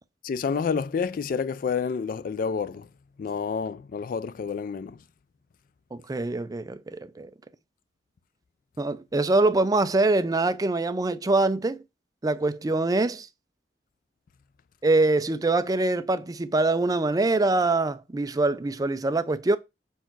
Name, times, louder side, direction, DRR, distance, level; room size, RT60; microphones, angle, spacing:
voice 1, 0.3-2.9 3.2-5.0, left 6 dB, 50° left, 0.3 m, -29 dB
voice 2, 5.9-7.3 8.8-11.8 12.2-13.3 14.8-19.6, right 2 dB, 20° right, 0.4 m, -24 dB
5.5 x 4.5 x 4.5 m
head